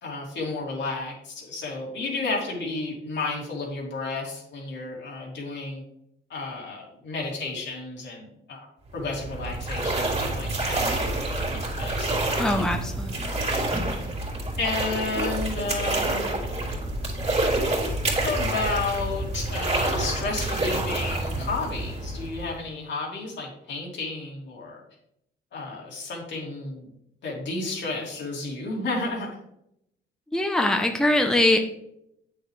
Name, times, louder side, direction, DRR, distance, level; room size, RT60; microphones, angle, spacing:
voice 1, 0.0-5.8 6.3-8.7 8.9-10.9 11.8-12.2 12.5-12.7 14.6-16.3 18.1-24.8 25.5-26.9 27.2-29.4, left 3 dB, 65° left, -2 dB, 2.7 m, -32 dB
sound 1, 8.9-22.7, right 2 dB, 30° right, 2.7 m, -28 dB
voice 2, 12.4-13.4 30.3-31.6, left 1 dB, 5° left, 4 dB, 0.8 m, -22 dB
8.2 x 6.6 x 3.3 m, 0.77 s
cardioid pair, 90°, 20 cm